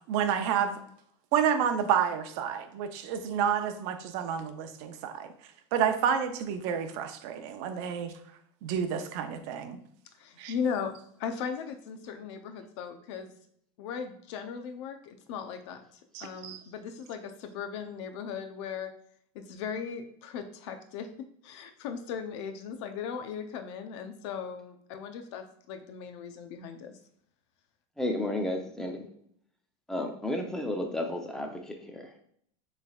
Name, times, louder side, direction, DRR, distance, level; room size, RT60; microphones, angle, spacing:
voice 1, 0.1-0.8 1.3-5.3 5.7-8.1 8.6-9.8 10.4-10.5 16.1-16.6, right 8 dB, 55° right, 7 dB, 0.6 m, -29 dB
voice 2, 10.2-10.9 11.2-13.3 13.8-18.9 19.3-21.1 21.4-27.0, left 6 dB, 65° left, 7 dB, 0.7 m, -37 dB
voice 3, 28.0-29.1 29.9-32.2, left 1 dB, 5° left, 3 dB, 0.6 m, -32 dB
6.7 x 3.3 x 2.4 m, 0.67 s
supercardioid pair, 135°, 16 cm